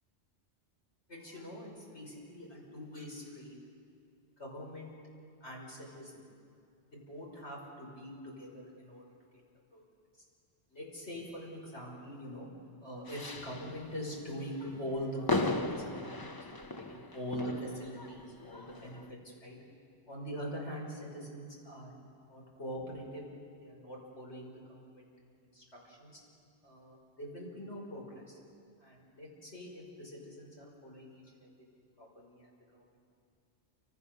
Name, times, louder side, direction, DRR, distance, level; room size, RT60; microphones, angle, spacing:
voice 1, 1.1-3.6 4.4-5.0 5.4-6.2 6.9-9.0 9.7-9.8 10.2-10.3 10.7-12.5 12.8-19.6 20.1-21.9 22.3-23.2 23.6-25.1 25.4-26.2 26.6-28.4 28.8-31.5 32.0-32.8, equal, 85° left, -2 dB, 5.9 m, -43 dB
sound 1, 13.1-13.9 14.5-19.1, left 2 dB, 20° left, 0.8 m, -37 dB
28.5 x 26.0 x 6.8 m, 2.4 s
omnidirectional pair, 1.1 m